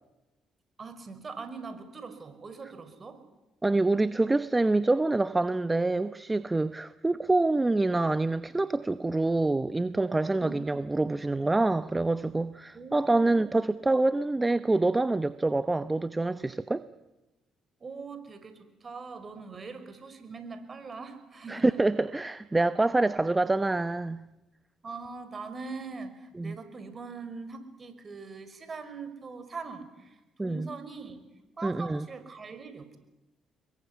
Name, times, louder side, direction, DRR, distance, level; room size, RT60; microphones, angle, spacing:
voice 1, 0.8-3.2 10.4-10.6 12.7-13.6 17.8-21.8 24.8-31.2 31.6-33.0, right 4 dB, 40° right, 5.2 m, -42 dB
voice 2, 3.6-16.8 21.5-24.3 26.4-26.6 30.4-30.7 31.6-32.1, right 2 dB, 20° right, 0.9 m, -26 dB
26.5 x 22.5 x 9.6 m
supercardioid pair, 65°, 0 cm